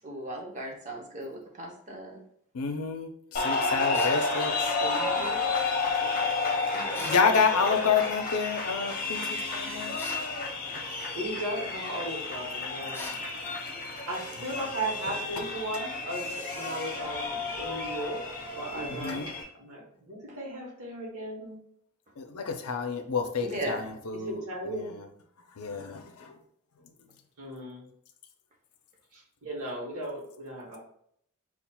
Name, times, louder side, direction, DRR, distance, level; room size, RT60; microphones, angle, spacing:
voice 1, 0.0-2.2 4.8-5.4 18.7-19.2 23.4-23.8, right 1 dB, 35° right, 0 dB, 0.8 m, -38 dB
voice 2, 2.5-4.7 7.0-9.9 10.7-10.8 18.9-19.3 22.2-24.4 24.7-25.0 25.6-26.4, left 5 dB, 70° left, 6 dB, 0.5 m, -29 dB
sound 1, 3.3-19.4, left 3 dB, 40° left, 0.8 m, -31 dB
sound 2, 3.9-4.2 6.9-7.3 10.0-10.3 12.9-13.3, left 2 dB, 10° left, 0.5 m, -40 dB
voice 3, 6.7-7.4 7.7-7.9 10.1-10.2 11.1-13.1 14.1-18.2 18.6-19.2 19.5-21.6 23.5-23.7 24.2-24.9 27.4-27.9 29.1-30.8, right 1 dB, 70° right, -4 dB, 1.1 m, -36 dB
5.6 x 2.4 x 2.2 m, 0.68 s
head